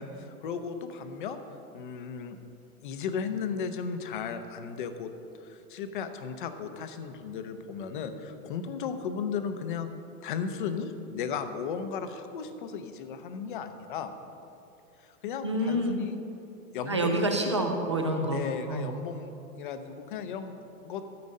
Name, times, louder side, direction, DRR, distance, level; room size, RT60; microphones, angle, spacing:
voice 1, 0.0-1.4 1.7-2.4 2.8-5.1 5.4-9.9 10.2-14.1 15.0-16.1 16.7-17.1 18.3-20.5 20.8-21.0, left 6 dB, 35° left, 9 dB, 0.7 m, -35 dB
voice 2, 15.4-16.0 16.9-18.4 18.7-18.9, right 1 dB, 25° right, 3 dB, 0.3 m, -27 dB
13.5 x 8.7 x 5.3 m, 2.8 s
supercardioid pair, 175°, 44 cm